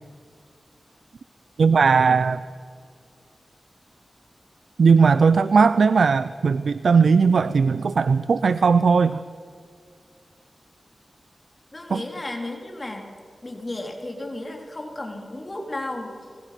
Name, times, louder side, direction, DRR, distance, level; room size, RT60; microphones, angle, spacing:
voice 1, 1.6-2.4 4.8-9.2 11.9-12.0, right 5 dB, 85° right, 14 dB, 0.5 m, -18 dB
voice 2, 11.7-13.1 13.4-16.2, left 2 dB, 35° left, 2 dB, 4.0 m, -33 dB
28.5 x 20.0 x 6.1 m, 2.2 s
cardioid pair, 60°, 0 cm